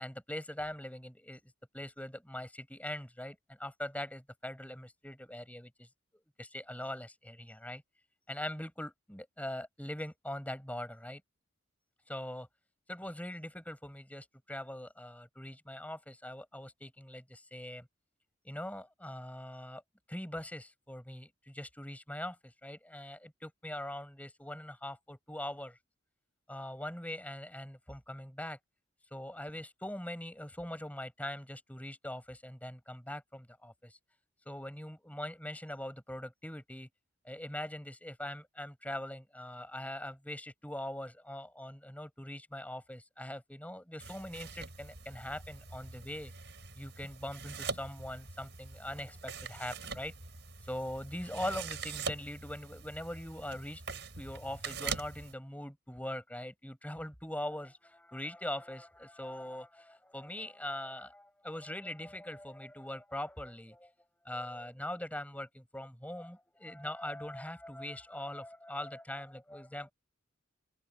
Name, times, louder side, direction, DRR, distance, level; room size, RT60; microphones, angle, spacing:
voice 1, 0.0-1.4 1.7-5.9 6.4-7.8 8.3-11.2 12.1-12.5 12.9-17.9 18.4-19.8 20.1-25.8 26.5-28.6 29.1-34.0 34.4-36.9 37.2-46.3 46.8-50.1 50.7-53.8 54.2-63.9 64.2-69.9, left 1 dB, 5° left, 6.6 m, -42 dB
sound 1, 44.0-55.3, right 5 dB, 55° right, 7.3 m, -43 dB
head